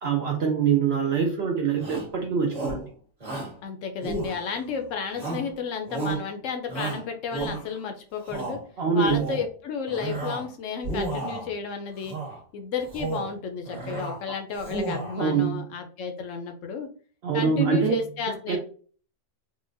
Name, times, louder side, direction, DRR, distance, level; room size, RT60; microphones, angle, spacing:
voice 1, 0.0-2.9 8.8-9.2 15.2-15.6 17.2-18.0 18.5-18.6, right 6 dB, 65° right, 1 dB, 0.6 m, -24 dB
Shout, 1.8-2.1 2.5-2.9 3.2-3.6 4.0-4.7 5.2-5.5 5.9-6.3 6.7-7.8 8.2-8.6 9.0-9.5 9.9-10.5 10.8-11.5 12.0-12.4 12.8-13.3 13.7-14.2 14.5-15.2, right 3 dB, 30° right, 1.3 m, -33 dB
voice 2, 3.6-8.6 9.0-12.2 12.5-16.9 17.3-18.6, left 5 dB, 70° left, 5 dB, 0.8 m, -32 dB
3.9 x 2.1 x 2.5 m, 0.42 s
omnidirectional pair, 1.6 m